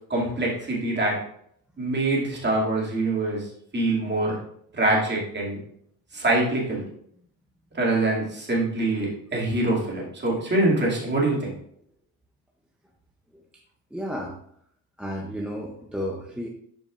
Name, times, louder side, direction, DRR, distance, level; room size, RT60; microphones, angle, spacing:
voice 1, 0.1-1.2 1.8-3.5 3.7-4.4 4.7-5.6 6.1-6.8 7.7-11.5, right 2 dB, 20° right, -3 dB, 2.3 m, -24 dB
voice 2, 13.9-14.4 15.0-16.5, equal, ahead, -1 dB, 0.5 m, -32 dB
11.5 x 5.1 x 2.4 m, 0.68 s
cardioid pair, 150°, 48 cm